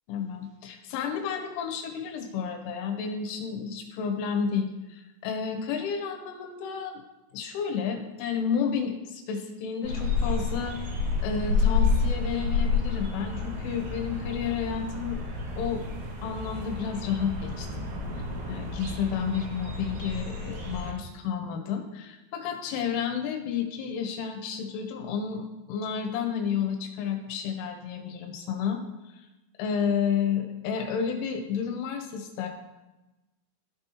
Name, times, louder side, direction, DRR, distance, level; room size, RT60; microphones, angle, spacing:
voice 1, 0.1-7.0 7.3-10.8 11.2-15.2 15.6-15.8 16.2-17.9 18.4-28.8 29.1-29.3 29.6-32.5, left 7 dB, 80° left, 4 dB, 3.4 m, -31 dB
sound 1, 9.8-20.9, left 4 dB, 65° right, 2.7 m, -30 dB
14.5 x 5.4 x 2.9 m, 1.0 s
omnidirectional pair, 5.7 m